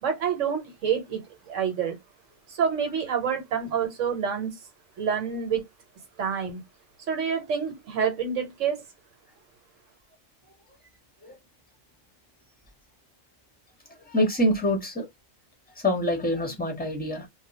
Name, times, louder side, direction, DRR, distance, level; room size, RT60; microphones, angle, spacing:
voice 1, 0.0-2.0 2.5-4.5 5.0-5.6 6.2-6.6 7.1-8.8, right 7 dB, 70° right, 1.1 m, -27 dB
voice 2, 14.1-15.1 15.8-17.3, equal, 10° left, 0.7 m, -25 dB
2.3 x 2.2 x 3.9 m
omnidirectional pair, 1.4 m